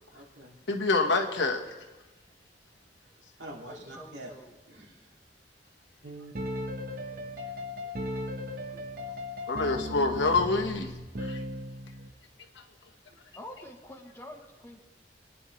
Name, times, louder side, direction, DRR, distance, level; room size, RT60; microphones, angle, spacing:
voice 1, 0.1-0.6 3.4-4.3 4.7-5.0 6.1-6.7 7.1-7.4 7.7-9.5, right 1 dB, 80° right, -2 dB, 2.5 m, -49 dB
voice 2, 0.7-1.6 9.5-10.9 11.2-11.4, left 3 dB, 90° left, 3 dB, 1.4 m, -26 dB
voice 3, 3.7-4.5 13.4-14.8, left 1 dB, 15° left, 1 dB, 1.1 m, -46 dB
sound 1, 6.0-12.1, left 1 dB, 50° right, 1.0 m, -37 dB
26.0 x 9.9 x 3.2 m, 1.2 s
head